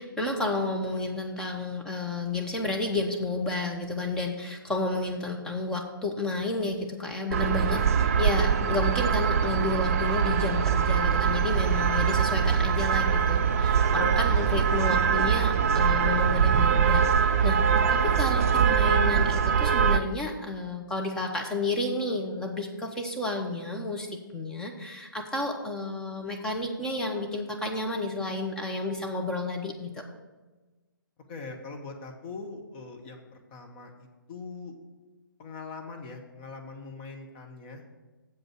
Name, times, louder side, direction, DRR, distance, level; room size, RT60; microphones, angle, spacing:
voice 1, 0.0-17.6 17.9-30.0, left 2 dB, 5° left, 0 dB, 0.8 m, -31 dB
sound 1, 7.3-20.0, right 7 dB, 40° right, 0.5 m, -23 dB
voice 2, 31.3-34.7 35.4-37.8, left 4 dB, 25° left, 2 dB, 1.1 m, -42 dB
7.5 x 5.2 x 7.4 m, 1.2 s
figure-of-eight pair, 130°, 12 cm